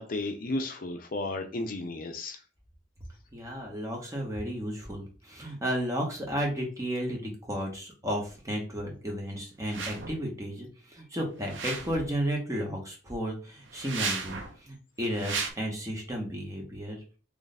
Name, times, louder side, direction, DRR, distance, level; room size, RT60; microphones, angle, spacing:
voice 1, 0.0-2.4, left 2 dB, 50° left, 6 dB, 0.5 m, -33 dB
voice 2, 3.3-17.0, equal, 15° right, 0 dB, 1.0 m, -33 dB
sound 1, 9.6-10.2 11.4-12.2 13.7-14.6 15.1-15.5, right 5 dB, 80° right, 0.7 m, -34 dB
3.2 x 2.4 x 4.0 m, 0.36 s
head